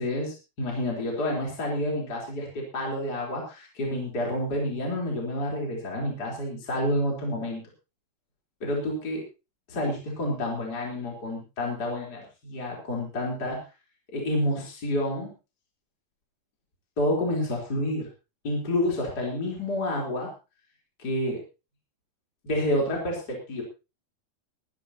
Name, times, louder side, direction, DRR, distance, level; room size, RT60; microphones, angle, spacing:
voice 1, 0.0-7.6 8.6-9.2 9.7-13.6 14.1-15.3 17.0-18.1 18.4-20.3 21.0-21.4 22.4-23.6, left 1 dB, 25° left, -2 dB, 4.3 m, -29 dB
22.0 x 12.5 x 2.9 m, 0.30 s
omnidirectional pair, 4.1 m